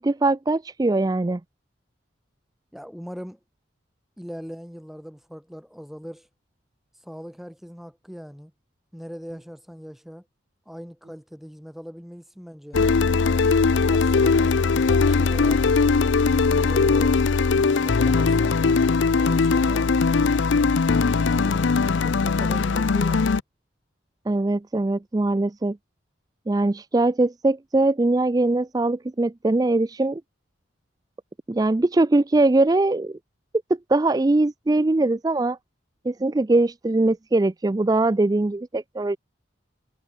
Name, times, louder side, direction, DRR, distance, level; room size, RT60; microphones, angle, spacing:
voice 1, 0.0-1.4 24.3-25.8 26.5-30.2 31.5-33.2 33.9-35.6 36.0-39.2, right 2 dB, 20° right, 0.3 m, -21 dB
voice 2, 2.7-3.4 4.2-6.3 7.0-8.5 8.9-10.3 10.6-13.3 13.8-15.7 16.3-17.2 17.5-18.6 19.1-20.4 21.1-21.7 22.0-23.4, equal, ahead, 1.6 m, -40 dB
sound 1, 12.7-23.4, left 4 dB, 70° left, 0.5 m, -20 dB
head